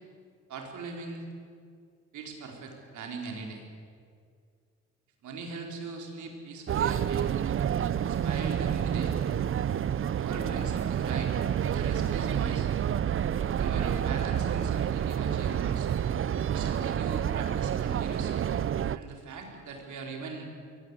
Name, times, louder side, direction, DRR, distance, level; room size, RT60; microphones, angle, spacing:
voice 1, 0.5-1.2 2.1-3.6 5.2-7.3 8.0-9.2 10.2-12.7 13.5-15.9 16.5-18.5 18.9-20.4, right 4 dB, 75° right, 2 dB, 4.5 m, -40 dB
sound 1, 6.7-19.0, right 9 dB, 45° right, 0.7 m, -29 dB
22.0 x 18.0 x 8.3 m, 2.2 s
cardioid pair, 90°, 30 cm